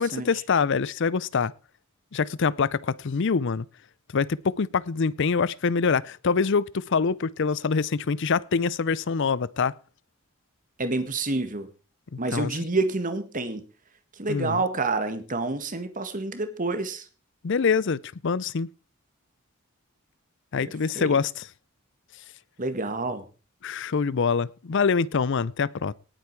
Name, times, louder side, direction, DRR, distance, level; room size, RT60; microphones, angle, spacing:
voice 1, 0.0-1.5 2.1-3.7 4.1-9.7 12.1-12.5 14.3-14.6 17.4-18.7 20.5-21.5 23.6-25.9, left 5 dB, 55° left, 0.5 m, -25 dB
voice 2, 10.8-11.7 12.2-13.7 14.2-17.1 20.5-21.2 22.6-23.3, right 3 dB, 40° right, 1.6 m, -28 dB
18.5 x 8.2 x 4.6 m
head